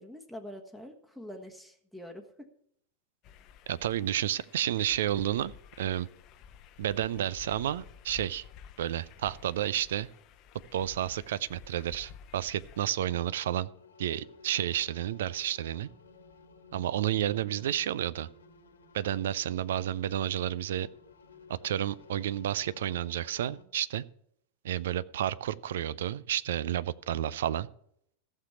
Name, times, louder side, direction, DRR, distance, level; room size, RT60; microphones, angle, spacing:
voice 1, 0.0-2.2, equal, 5° right, 3 dB, 1.3 m, -45 dB
sound 1, 3.2-12.9, left 7 dB, 40° left, 0.8 m, -52 dB
voice 2, 3.7-5.5 5.8-6.1 6.8-8.4 8.8-10.1 10.7-13.7 14.0-15.9 16.7-18.3 18.9-20.9 21.5-24.0 24.6-27.7, right 11 dB, 60° right, 18 dB, 0.5 m, -31 dB
sound 2, 13.6-23.6, left 4 dB, 65° left, 1.5 m, -56 dB
14.5 x 6.7 x 5.8 m, 0.70 s
figure-of-eight pair, 90°, 0 cm